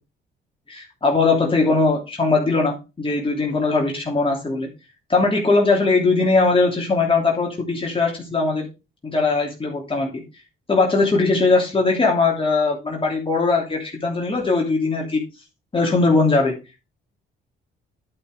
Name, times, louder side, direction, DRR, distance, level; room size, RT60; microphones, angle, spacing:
voice 1, 0.7-4.7 5.1-8.7 9.0-10.2 10.7-15.2 15.7-16.5, left 3 dB, 25° left, -1 dB, 3.0 m, -20 dB
11.0 x 5.9 x 4.9 m, 0.29 s
cardioid pair, 90°, 20 cm